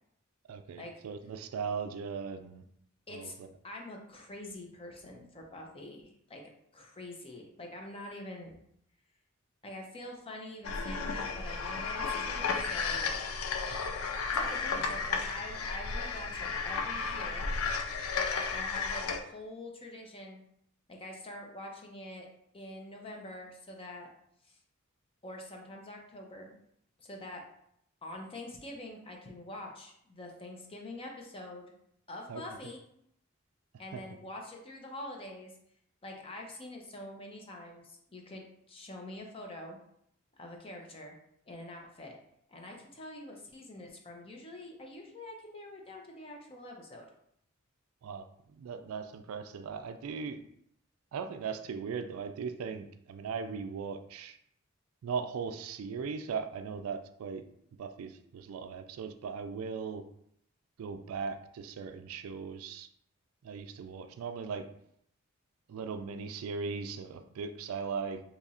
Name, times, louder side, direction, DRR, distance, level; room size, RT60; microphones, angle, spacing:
voice 1, 0.5-2.6 3.1-3.5 13.7-13.8 32.3-32.4 33.9-34.0 48.0-50.4 51.1-54.4 55.0-57.4 57.8-60.0 60.8-62.9 63.4-64.7 65.7-68.2, right 5 dB, 80° right, 9 dB, 0.3 m, -38 dB
voice 2, 3.6-6.4 6.7-8.5 9.6-13.1 14.3-17.5 18.5-20.4 20.9-22.3 22.5-24.1 24.4-24.6 25.2-26.5 27.0-27.4 28.0-31.7 32.1-32.8 33.8-35.5 36.0-39.8 40.3-41.2 41.5-42.1 42.5-47.1, left 1 dB, 25° left, 1 dB, 0.6 m, -45 dB
sound 1, 10.6-19.2, left 4 dB, 70° left, 0.4 m, -33 dB
2.9 x 2.4 x 4.1 m, 0.71 s
head